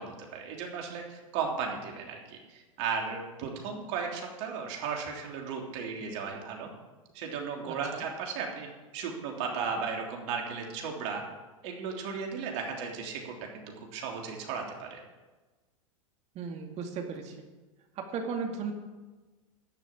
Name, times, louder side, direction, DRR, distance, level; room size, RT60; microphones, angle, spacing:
voice 1, 0.0-6.7 7.1-8.7 8.9-11.2 11.6-13.6 13.9-15.0, right 5 dB, 60° right, 1 dB, 3.4 m, -35 dB
voice 2, 7.7-8.0 16.4-17.5 18.0-18.7, right 5 dB, 40° right, 3 dB, 2.2 m, -36 dB
14.0 x 6.4 x 9.6 m, 1.2 s
hypercardioid pair, 105°, 17 cm